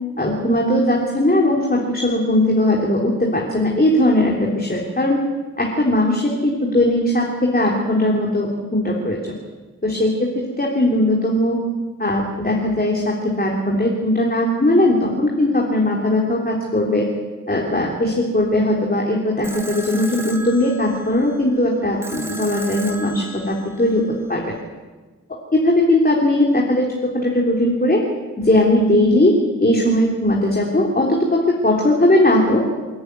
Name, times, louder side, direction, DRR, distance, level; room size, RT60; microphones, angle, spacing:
voice 1, 0.2-5.2 5.6-9.2 9.8-10.1 10.6-11.6 12.0-17.1 17.5-24.0 24.3-24.6 25.5-28.0 28.4-29.3 29.6-32.6, left 1 dB, 30° left, -1 dB, 3.6 m, -18 dB
sound 1, 19.4-24.5, right 1 dB, 10° right, 3.1 m, -36 dB
28.5 x 10.5 x 9.7 m, 1.3 s
cardioid pair, 70°, 31 cm